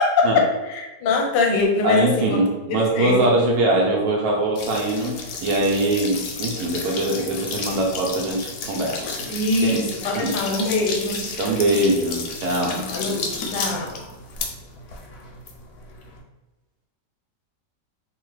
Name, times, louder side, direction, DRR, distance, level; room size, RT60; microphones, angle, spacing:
voice 1, 0.0-3.2 9.3-11.3 12.9-14.1, left 3 dB, 85° left, 1 dB, 1.3 m, -23 dB
voice 2, 1.8-5.1 5.4-9.3 9.6-9.8 10.1-10.3 11.4-12.8, right 1 dB, 70° right, -2 dB, 1.0 m, -22 dB
sound 1, 4.6-16.2, left 4 dB, 70° left, 1.0 m, -32 dB
2.9 x 2.4 x 3.1 m, 1.1 s
omnidirectional pair, 1.9 m